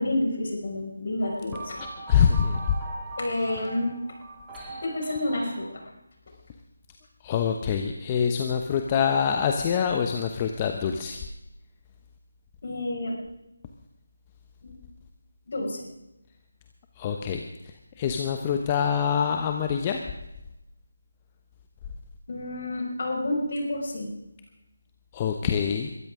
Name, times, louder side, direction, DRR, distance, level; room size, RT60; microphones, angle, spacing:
voice 1, 0.0-1.8 3.2-3.9 4.8-5.8 12.6-13.2 14.6-14.7 15.5-15.8 22.3-24.1, left 1 dB, 50° left, -1 dB, 5.8 m, -29 dB
sound 1, 1.2-5.6, right 2 dB, 10° right, 2.9 m, -40 dB
voice 2, 1.8-2.8 7.2-11.2 17.0-20.0 25.1-25.9, left 7 dB, 20° left, 4 dB, 0.9 m, -25 dB
22.5 x 13.5 x 3.7 m, 0.90 s
figure-of-eight pair, 160°, 0 cm